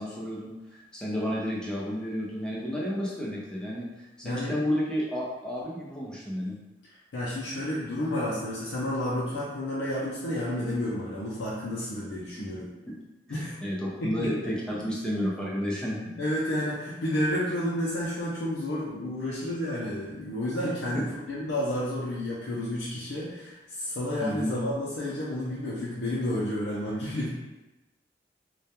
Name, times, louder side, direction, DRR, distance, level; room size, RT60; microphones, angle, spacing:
voice 1, 0.0-6.6 12.4-12.5 12.9-13.0 13.3-16.1 20.9-21.0 24.2-24.6, equal, 5° left, -5 dB, 0.4 m, -31 dB
voice 2, 4.2-4.6 7.1-12.7 13.3-13.6 14.0-14.3 16.0-21.0 21.3-27.3, left 1 dB, 90° left, -7 dB, 0.5 m, -31 dB
2.2 x 2.1 x 2.8 m, 1.0 s
head